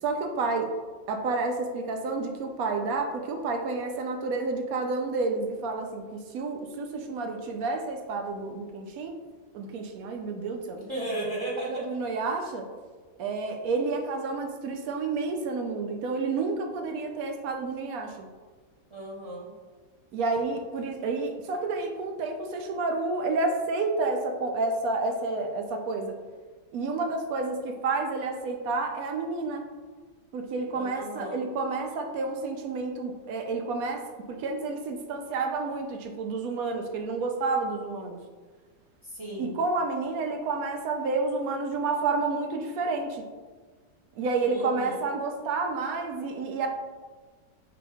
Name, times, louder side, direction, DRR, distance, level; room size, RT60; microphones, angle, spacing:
voice 1, 0.0-0.7 1.1-9.1 9.5-10.8 11.6-12.7 13.2-18.2 20.1-26.1 26.7-29.6 30.3-34.0 34.3-38.2 39.4-43.2 44.2-46.7, right 3 dB, 70° right, 4 dB, 0.9 m, -30 dB
voice 2, 10.8-11.8 18.9-19.5 30.7-31.4 39.0-39.6 44.4-45.0, right 1 dB, 30° right, -5 dB, 0.5 m, -35 dB
5.1 x 2.9 x 3.4 m, 1.4 s
omnidirectional pair, 1.8 m